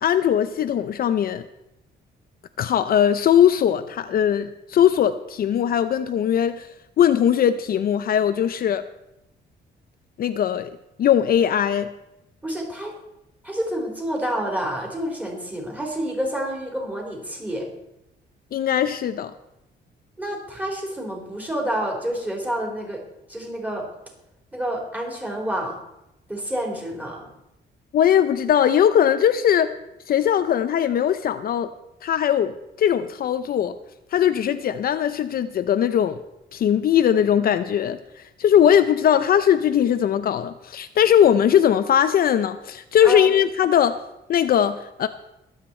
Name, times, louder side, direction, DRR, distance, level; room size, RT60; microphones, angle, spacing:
voice 1, 0.0-1.4 2.6-6.7 7.0-8.8 10.2-10.7 11.0-11.9 18.5-19.3 27.9-29.7 30.1-31.7 32.0-33.7 34.1-36.2 36.5-38.0 38.4-44.0 44.3-45.1, left 9 dB, 55° left, 10 dB, 0.6 m, -20 dB
voice 2, 12.4-12.9 13.4-17.7 20.2-23.0 23.3-23.9 24.5-25.8 26.3-27.3 43.0-43.3, right 1 dB, 10° right, -1 dB, 3.8 m, -28 dB
22.0 x 8.3 x 4.4 m, 0.88 s
cardioid pair, 135°, 18 cm